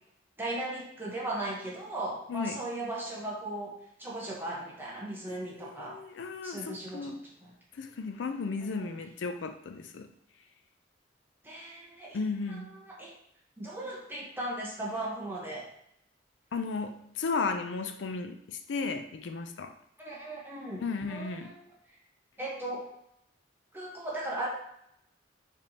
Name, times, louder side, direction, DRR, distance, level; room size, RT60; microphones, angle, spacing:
voice 1, 0.4-3.7 4.0-6.0 6.4-7.1 7.4-7.5 8.7-8.9 11.4-12.2 12.8-13.1 13.6-15.6 20.0-20.8 21.1-21.7 22.4-22.8 23.7-24.5, right 1 dB, 10° right, -5 dB, 1.1 m, -37 dB
voice 2, 2.3-2.6 5.3-7.3 7.7-10.1 12.1-12.7 16.5-19.7 20.8-21.5, left 4 dB, 80° left, 8 dB, 0.4 m, -35 dB
5.1 x 3.3 x 2.8 m, 0.75 s
head